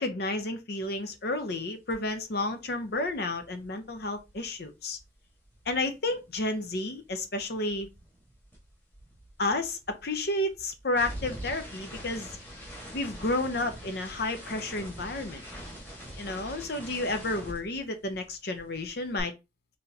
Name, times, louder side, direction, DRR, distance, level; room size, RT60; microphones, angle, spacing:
voice 1, 0.0-5.0 5.7-7.9 9.4-12.3 12.9-15.4 16.2-19.3, left 2 dB, 55° left, 0.7 m, -31 dB
sound 1, 1.9-2.1 2.4-6.8 7.0-18.3 18.5-19.2, equal, 10° left, 1.5 m, -44 dB
4.3 x 3.3 x 2.8 m
head